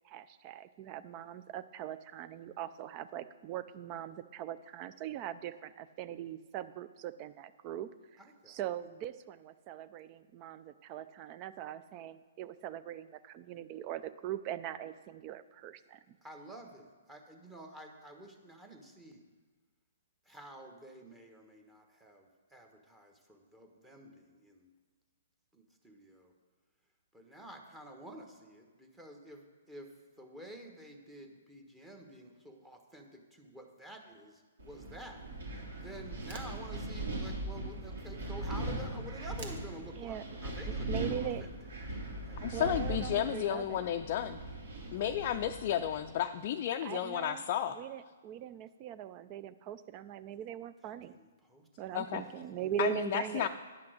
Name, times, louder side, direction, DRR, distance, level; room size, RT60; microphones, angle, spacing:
voice 1, 0.0-8.2 8.5-16.2 40.0-40.2 40.7-41.5 42.5-43.9 46.8-47.4 47.7-51.1 51.8-53.5, right 10 dB, 35° right, 14 dB, 0.4 m, -41 dB
voice 2, 8.2-8.6 16.2-19.2 20.3-24.7 25.5-26.3 27.1-29.9 30.2-35.2 35.8-41.5 41.9-42.5 45.0-45.4 51.2-51.7 52.2-52.7 53.3-53.5, right 1 dB, 10° right, 2 dB, 1.2 m, -50 dB
Wind, 34.6-46.1, right 1 dB, 75° right, 3.1 m, -40 dB
sound 1, 36.0-42.4, right 4 dB, 50° right, 1.6 m, -56 dB
voice 3, 42.4-44.4 44.9-47.8 51.9-52.2 52.8-53.5, left 10 dB, 45° left, 5 dB, 0.4 m, -32 dB
9.8 x 5.8 x 6.4 m, 1.4 s
hypercardioid pair, 130°, 0 cm